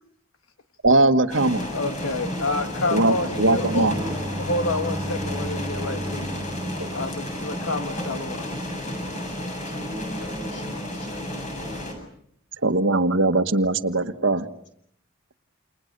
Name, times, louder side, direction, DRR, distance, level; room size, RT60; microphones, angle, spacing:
voice 1, 0.8-1.7 2.9-3.9 6.8-6.9 12.6-14.4, right 2 dB, 65° right, 10 dB, 1.5 m, -20 dB
sound 1, 1.3-11.9, equal, 35° left, 7.9 m, -31 dB
voice 2, 1.7-3.9 4.4-6.3 6.9-8.5, left 2 dB, 80° left, 7 dB, 1.5 m, -28 dB
Bowed string instrument, 3.0-7.8, equal, 10° right, 2.7 m, -36 dB
voice 3, 3.3-4.4 9.6-12.0, equal, 60° left, 5 dB, 7.6 m, -38 dB
29.5 x 29.0 x 6.7 m, 0.70 s
head